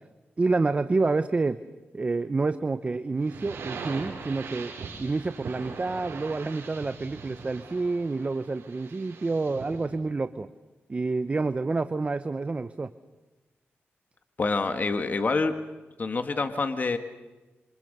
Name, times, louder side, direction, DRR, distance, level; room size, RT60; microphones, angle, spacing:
voice 1, 0.4-1.6 1.9-4.7 5.0-10.5 10.9-12.9, right 3 dB, 30° right, 11 dB, 0.8 m, -28 dB
sound 1, 3.2-9.9, right 5 dB, 80° right, 5.5 m, -41 dB
voice 2, 14.4-15.6 16.0-17.0, left 3 dB, 40° left, 7 dB, 1.7 m, -26 dB
28.0 x 26.0 x 6.7 m, 1.2 s
wide cardioid pair, 105°, 4 cm